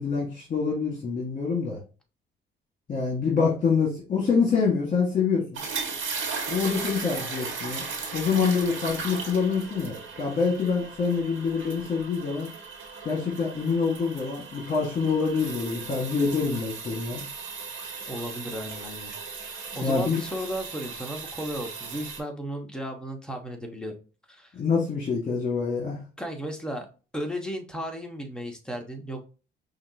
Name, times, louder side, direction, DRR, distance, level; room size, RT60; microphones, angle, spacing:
voice 1, 0.0-1.8 2.9-5.6 6.5-7.8 8.1-12.5 13.0-17.2 19.8-20.2 24.5-26.0, left 5 dB, 40° left, -3 dB, 1.6 m, -26 dB
sound 1, 5.5-22.2, right 5 dB, 75° right, 1.6 m, -37 dB
voice 2, 18.1-19.1 19.5-23.9 24.3-24.5 26.2-26.9 27.1-29.2, equal, 5° left, 2 dB, 1.2 m, -35 dB
5.6 x 2.6 x 2.8 m, 0.34 s
cardioid pair, 90°, 20 cm